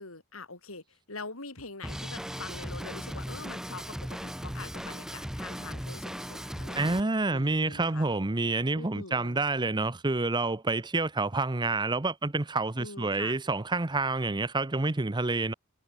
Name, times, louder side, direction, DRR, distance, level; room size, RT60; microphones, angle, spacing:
voice 1, 0.0-8.1 8.7-9.4 12.8-13.4, left 3 dB, 75° left, 5.0 m, -44 dB
Drum kit, 1.8-7.0, equal, 5° right, 2.7 m, -37 dB
voice 2, 6.8-15.5, right 3 dB, 20° right, 0.8 m, -28 dB
head